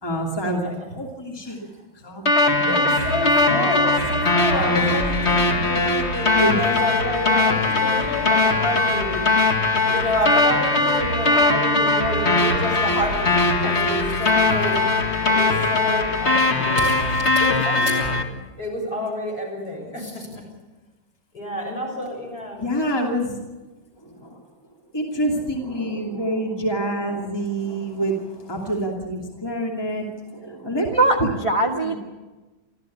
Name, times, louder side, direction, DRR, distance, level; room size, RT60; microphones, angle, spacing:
voice 1, 0.0-1.7 1.9-2.8 3.5-3.6 4.5-5.0 6.4-6.5 22.6-23.4 24.0-24.4 24.9-31.3 31.8-32.0, right 1 dB, 10° left, 0 dB, 2.7 m, -27 dB
voice 2, 1.5-1.9 2.6-9.2 9.6-14.8 15.2-18.3 18.6-20.5 21.3-22.6, left 1 dB, 55° left, -1 dB, 7.7 m, -28 dB
sound 1, 2.3-18.2, left 2 dB, 35° left, 2.0 m, -20 dB
voice 3, 31.0-32.0, right 2 dB, 20° right, 3 dB, 1.3 m, -20 dB
25.0 x 14.5 x 8.6 m, 1.2 s
omnidirectional pair, 2.1 m